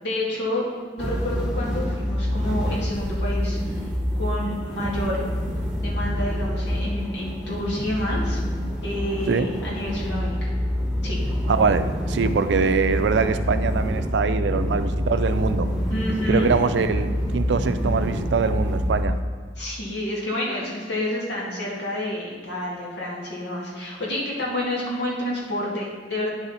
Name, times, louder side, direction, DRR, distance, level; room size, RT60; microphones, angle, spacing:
voice 1, 0.0-0.7 0.9-3.9 4.2-5.2 5.8-8.4 8.8-10.5 11.0-11.2 15.9-16.5 19.6-26.3, left 1 dB, 85° left, -5 dB, 2.0 m, -29 dB
sound 1, 1.0-19.0, equal, 5° right, 1.0 m, -26 dB
voice 2, 11.5-15.7 16.3-19.2, right 5 dB, 80° right, 11 dB, 0.4 m, -23 dB
10.0 x 4.9 x 4.0 m, 1.5 s
head